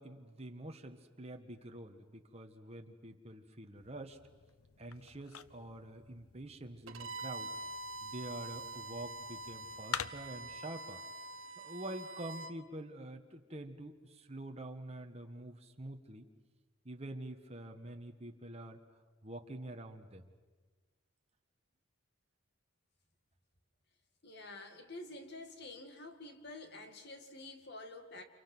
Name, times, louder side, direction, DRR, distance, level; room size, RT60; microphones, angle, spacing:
voice 1, 0.0-4.2 4.8-7.6 8.0-11.0 11.6-16.3 16.8-18.8 19.2-20.3, right 1 dB, 30° right, 4 dB, 1.5 m, -46 dB
sound 1, 3.8-10.6, left 8 dB, 80° left, 0.7 m, -48 dB
Bowed string instrument, 6.9-12.5, right 2 dB, 65° right, 1.1 m, -45 dB
voice 2, 24.2-28.2, left 2 dB, 50° left, 6 dB, 2.2 m, -49 dB
30.0 x 28.0 x 6.2 m, 1.4 s
head